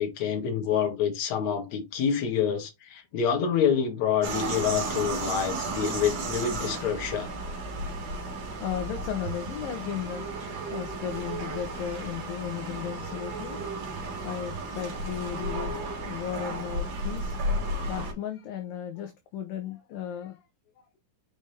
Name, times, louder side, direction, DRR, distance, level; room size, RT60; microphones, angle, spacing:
voice 1, 0.0-7.3, left 7 dB, 50° left, 2.6 m, -27 dB
sound 1, 4.2-18.1, right 2 dB, 50° right, 2.7 m, -33 dB
voice 2, 8.6-10.2 10.7-13.6 14.2-17.4 17.9-20.4, left 9 dB, 70° left, 2.3 m, -35 dB
6.6 x 5.1 x 3.3 m
omnidirectional pair, 4.7 m